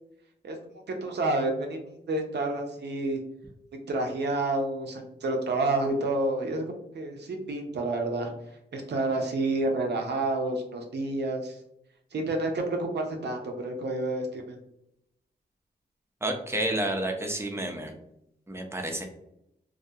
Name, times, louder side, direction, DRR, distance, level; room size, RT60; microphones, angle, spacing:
voice 1, 1.0-3.2 3.9-6.6 6.9-8.3 8.7-11.6 12.1-14.6, right 2 dB, 70° right, 3 dB, 0.6 m, -29 dB
voice 2, 16.2-17.9 18.5-19.1, right 1 dB, 15° right, 3 dB, 0.6 m, -30 dB
2.3 x 2.2 x 2.7 m, 0.80 s
cardioid pair, 55°, 18 cm